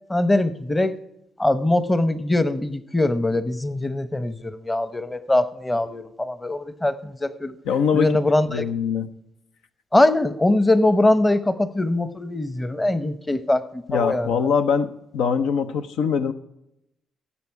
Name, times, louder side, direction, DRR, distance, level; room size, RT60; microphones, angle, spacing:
voice 1, 0.1-0.9 1.4-7.5 7.9-8.6 9.9-14.5, left 1 dB, 20° left, 14 dB, 0.9 m, -22 dB
voice 2, 7.7-8.1 8.5-9.1 13.9-16.3, left 6 dB, 85° left, 8 dB, 0.6 m, -22 dB
16.0 x 7.0 x 4.7 m, 0.82 s
supercardioid pair, 65°, 0 cm